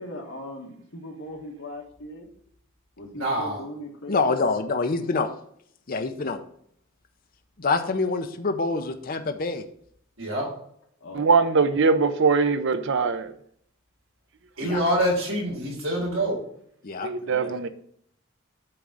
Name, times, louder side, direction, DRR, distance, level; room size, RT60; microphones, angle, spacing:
voice 1, 0.0-2.3 3.0-4.3 11.0-11.6 17.2-17.7, left 1 dB, 65° left, 1.7 m, -39 dB
voice 2, 3.2-3.6 10.2-10.5 14.6-16.4, equal, 80° right, 3.6 m, -25 dB
voice 3, 4.1-5.3 5.9-6.4 7.6-9.6 14.6-14.8 16.8-17.1, left 3 dB, 45° left, 0.6 m, -26 dB
voice 4, 11.1-13.3 17.0-17.7, right 4 dB, 60° right, 0.6 m, -21 dB
8.7 x 3.8 x 6.2 m
head